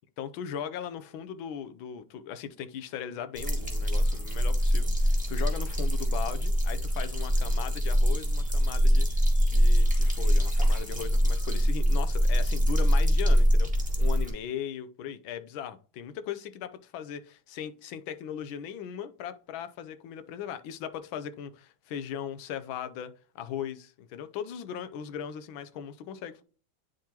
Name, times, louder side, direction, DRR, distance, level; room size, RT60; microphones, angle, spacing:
voice 1, 0.2-13.7 14.0-26.4, left 8 dB, 85° left, 1.5 m, -38 dB
sound 1, 3.4-14.3, equal, 5° right, 1.4 m, -24 dB
10.0 x 3.7 x 2.9 m
omnidirectional pair, 2.1 m